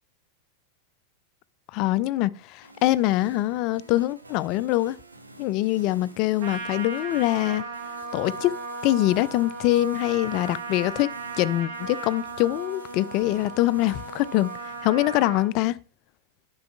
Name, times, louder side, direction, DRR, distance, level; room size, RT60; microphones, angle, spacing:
voice 1, 1.7-5.0 5.4-7.6 8.1-8.5 8.8-11.1 11.4-14.5 14.8-15.8, left 16 dB, 40° left, 0.3 m, -24 dB
sound 1, 2.6-14.8, right 2 dB, 80° right, 0.8 m, -49 dB
Trumpet, 6.4-15.5, right 3 dB, 55° right, 1.6 m, -36 dB
11.0 x 6.0 x 2.3 m
figure-of-eight pair, 90°, 0 cm